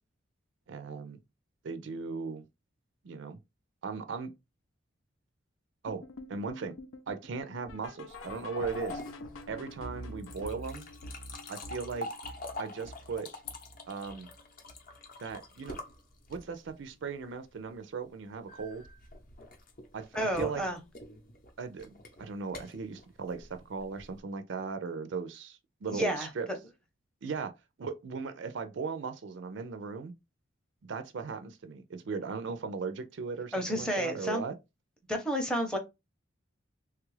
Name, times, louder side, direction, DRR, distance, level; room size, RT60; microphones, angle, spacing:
voice 1, 0.7-1.2 1.6-2.5 3.0-3.4 3.8-4.3 5.8-6.0 6.3-6.8 7.1-9.0 9.5-10.8 11.5-12.1 12.6-13.3 13.9-14.3 15.2-15.8 16.3-18.8 19.9-20.1 20.4-20.6 21.6-26.5 27.2-27.5 27.8-30.1 30.8-34.5, right 5 dB, 65° right, 0.4 m, -37 dB
sound 1, 5.9-15.0 15.3-15.6 15.9-16.0 16.5-16.6 17.1-17.2, left 1 dB, 85° left, 0.5 m, -47 dB
sound 2, 8.1-16.7 18.5-24.2, left 2 dB, 45° left, 0.6 m, -45 dB
voice 2, 20.1-20.8 25.9-26.3 33.5-34.4 35.1-35.8, equal, 5° left, 0.6 m, -30 dB
3.2 x 2.3 x 3.1 m
head